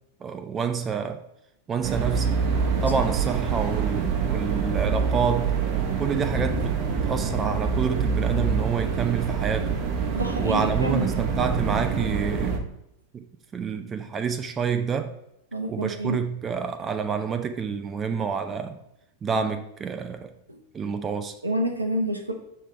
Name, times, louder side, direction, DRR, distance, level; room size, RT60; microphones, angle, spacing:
voice 1, 0.2-1.2 1.7-2.3 2.8-5.5 6.0-6.8 7.1-9.8 10.4-12.7 13.1-13.2 13.5-15.1 15.7-18.8 19.2-20.3 20.7-21.4, right 6 dB, 20° right, 0.4 m, -28 dB
sound 1, 1.8-12.6, right 6 dB, 45° right, 0.8 m, -26 dB
voice 2, 10.2-11.1 15.5-16.2 20.5-20.6 21.4-22.3, right 1 dB, 80° right, 0.8 m, -28 dB
6.6 x 3.3 x 4.3 m
figure-of-eight pair, 90°, 0 cm